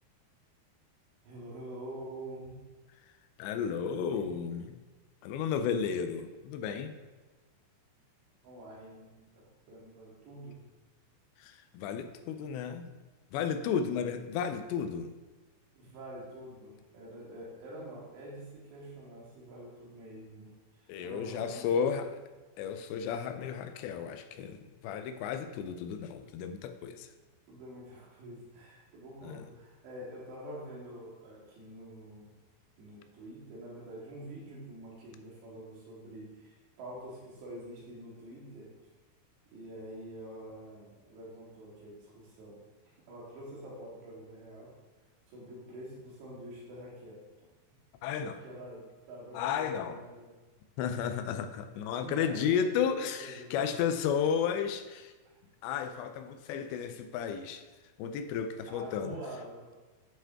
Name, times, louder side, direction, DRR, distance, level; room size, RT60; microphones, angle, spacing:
voice 1, 1.2-2.7 3.6-4.4 8.4-10.6 15.8-22.1 27.5-32.3 32.8-38.7 39.5-44.7 45.3-47.2 48.4-50.4 52.0-53.8 55.3-55.4 58.7-59.8, right 1 dB, 85° right, -5 dB, 4.4 m, -46 dB
voice 2, 3.4-4.8 5.2-6.9 11.4-12.9 13.3-15.1 20.9-22.1 22.6-27.1 29.2-29.4 48.0-48.4 49.3-50.0 50.8-55.1 55.6-57.6 58.0-59.2, left 7 dB, 90° left, 9 dB, 2.9 m, -33 dB
10.5 x 5.7 x 3.6 m, 1.2 s
omnidirectional pair, 4.9 m